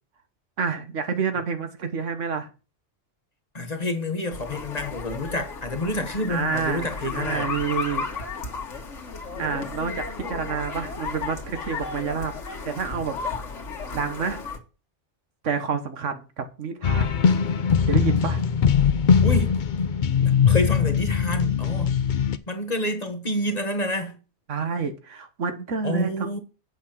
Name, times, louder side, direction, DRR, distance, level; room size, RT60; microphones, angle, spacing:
voice 1, 0.6-2.5 6.3-8.0 9.4-12.3 12.6-13.1 13.9-14.4 15.4-17.2 17.9-18.4 24.5-26.4, right 6 dB, 85° right, 1.5 m, -28 dB
voice 2, 3.5-7.5 19.2-19.6 20.1-22.0 22.5-24.2 25.8-26.4, left 1 dB, 35° left, 1.4 m, -28 dB
sound 1, 4.3-14.6, left 4 dB, 80° left, 1.7 m, -34 dB
sound 2, 16.8-22.4, left 7 dB, 50° left, 0.7 m, -21 dB
8.3 x 5.8 x 6.0 m
omnidirectional pair, 1.2 m